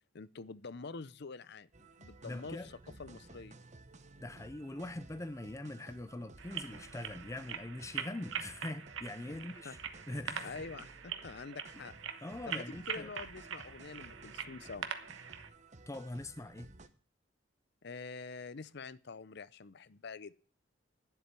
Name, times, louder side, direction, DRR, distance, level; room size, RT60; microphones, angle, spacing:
voice 1, 0.1-2.7 3.0-3.6 9.3-9.7 10.4-11.9 12.5-14.9 17.8-20.3, left 4 dB, 60° left, 0.6 m, -46 dB
sound 1, 1.7-16.9, right 2 dB, 35° right, 1.0 m, -56 dB
voice 2, 2.2-2.7 4.2-9.8 10.1-10.6 11.7-11.8 12.2-13.1 15.9-16.7, left 1 dB, 15° left, 0.5 m, -43 dB
sound 2, 6.4-15.5, right 7 dB, 90° right, 1.2 m, -43 dB
10.0 x 7.8 x 9.7 m
head